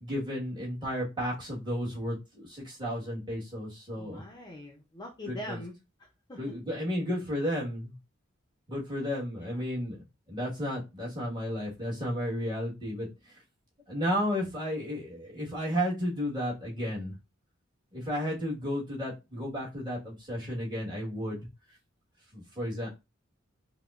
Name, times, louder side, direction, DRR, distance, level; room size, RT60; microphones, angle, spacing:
voice 1, 0.0-4.2 5.3-5.6 6.4-7.9 8.7-10.0 10.3-13.1 13.9-17.1 17.9-21.5 22.3-22.9, equal, 20° right, -5 dB, 1.4 m, -33 dB
voice 2, 4.0-5.7 6.3-6.4, left 1 dB, 20° left, 0 dB, 0.5 m, -42 dB
4.8 x 2.1 x 2.4 m, 0.25 s
head